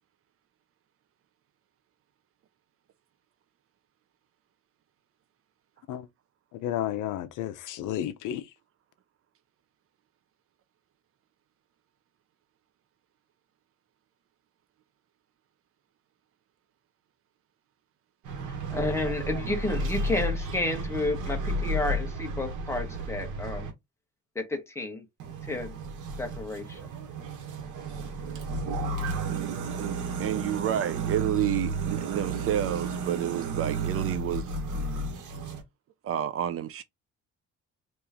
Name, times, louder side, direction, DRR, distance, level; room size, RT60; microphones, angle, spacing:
voice 1, 6.5-8.5, left 11 dB, 85° left, 0.6 m, -32 dB
sound 1, 18.3-23.7 25.2-35.6, right 3 dB, 80° right, 1.3 m, -32 dB
voice 2, 18.7-23.7 24.3-25.0 25.5-25.8 26.2-26.8, left 2 dB, 10° left, 1.2 m, -31 dB
voice 3, 29.3-34.6 36.0-36.8, right 11 dB, 50° right, 0.5 m, -30 dB
3.1 x 3.0 x 3.5 m
cardioid pair, 145°, 30 cm